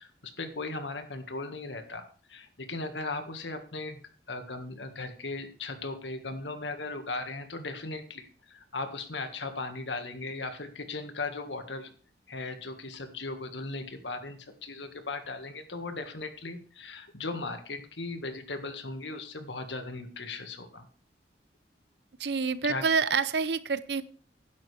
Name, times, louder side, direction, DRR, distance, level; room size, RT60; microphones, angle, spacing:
voice 1, 0.0-4.0 4.3-11.9 12.3-20.9 22.6-22.8, left 3 dB, 85° left, 7 dB, 1.7 m, -37 dB
voice 2, 22.2-24.0, right 5 dB, 70° right, 15 dB, 0.7 m, -27 dB
12.5 x 10.5 x 3.4 m, 0.43 s
head